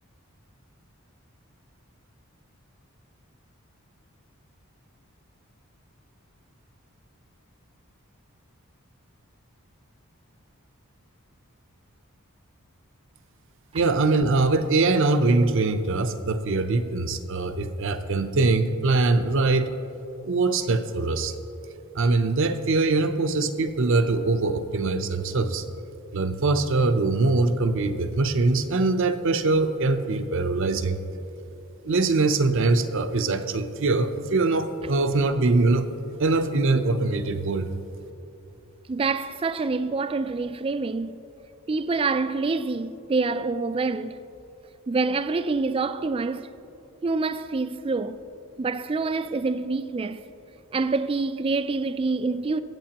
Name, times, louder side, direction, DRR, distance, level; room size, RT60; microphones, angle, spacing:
voice 1, 13.7-19.7 20.3-21.3 21.9-25.6 26.1-31.0 31.8-35.9 36.2-37.7, right 3 dB, 60° right, 0.6 m, -23 dB
voice 2, 38.9-41.2 41.7-44.2 44.9-46.5 47.0-48.2 48.6-50.2 50.7-52.6, right 3 dB, 25° right, 0.3 m, -26 dB
23.5 x 8.2 x 2.9 m
head